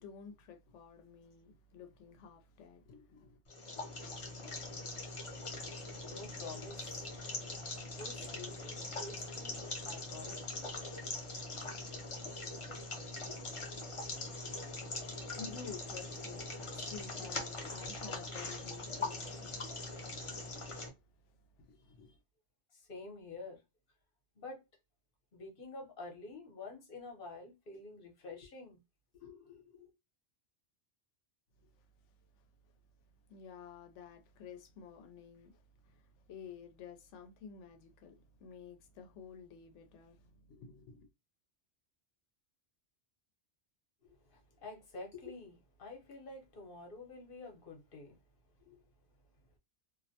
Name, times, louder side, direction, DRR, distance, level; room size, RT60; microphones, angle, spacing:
voice 1, 0.0-3.4 13.6-19.8 21.3-22.2 31.6-31.7 33.3-41.1, left 6 dB, 85° left, 0.9 m, -52 dB
sound 1, 3.5-20.9, left 2 dB, 35° left, 0.6 m, -42 dB
voice 2, 6.1-7.1 7.9-10.5 22.7-23.6 24.4-24.6 25.3-28.8 29.1-29.9 44.0-48.2 48.6-48.8, left 3 dB, 55° left, 1.0 m, -49 dB
2.5 x 2.1 x 2.6 m
omnidirectional pair, 1.2 m